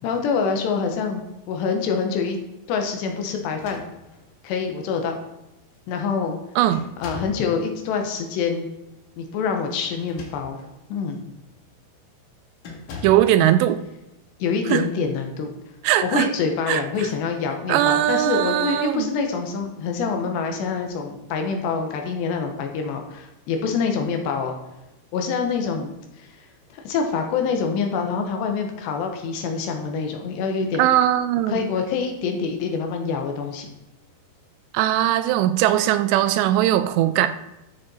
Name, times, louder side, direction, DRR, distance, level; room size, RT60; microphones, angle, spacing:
voice 1, 0.0-1.2 1.5-2.4 2.7-3.8 4.4-5.2 5.9-6.4 7.0-8.7 9.2-10.6 10.9-11.2 14.4-15.5 16.0-24.6 25.1-25.9 26.2-26.3 26.7-30.8 31.5-33.7, left 5 dB, 80° left, 3.3 m, -26 dB
sound 1, 3.4-4.4 5.2-5.3 5.7-6.1 6.7-7.5 9.9-10.7 11.3-11.5 12.6-13.3, left 4 dB, 55° left, 2.6 m, -40 dB
voice 2, 6.6-6.9 13.0-13.8 14.7-14.9 15.8-16.3 16.7-17.1 17.7-19.1 30.8-31.6 34.7-37.3, right 12 dB, 80° right, 2.8 m, -20 dB
13.0 x 7.0 x 4.4 m
omnidirectional pair, 5.1 m